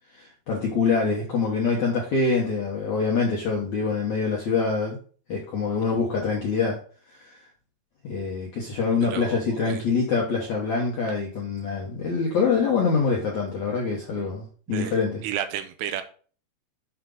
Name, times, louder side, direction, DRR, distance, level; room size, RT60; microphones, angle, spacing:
voice 1, 0.1-5.0 5.3-6.8 7.1-7.3 8.0-15.2, left 4 dB, 65° left, -3 dB, 1.8 m, -25 dB
voice 2, 9.1-9.8 14.7-16.0, right 10 dB, 80° right, 9 dB, 2.6 m, -32 dB
7.6 x 6.0 x 3.8 m, 0.41 s
omnidirectional pair, 5.4 m